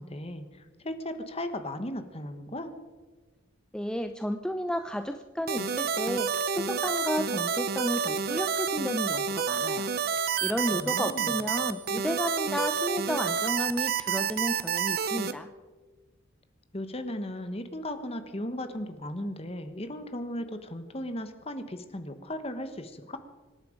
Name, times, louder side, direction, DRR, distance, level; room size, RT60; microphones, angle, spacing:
voice 1, 0.0-2.7 10.7-11.4 16.7-23.2, left 1 dB, 30° left, 9 dB, 1.2 m, -36 dB
voice 2, 3.7-15.5, equal, 5° left, 6 dB, 0.5 m, -32 dB
sound 1, 5.5-15.3, right 6 dB, 50° right, 0.7 m, -29 dB
25.5 x 10.5 x 5.1 m, 1.3 s
head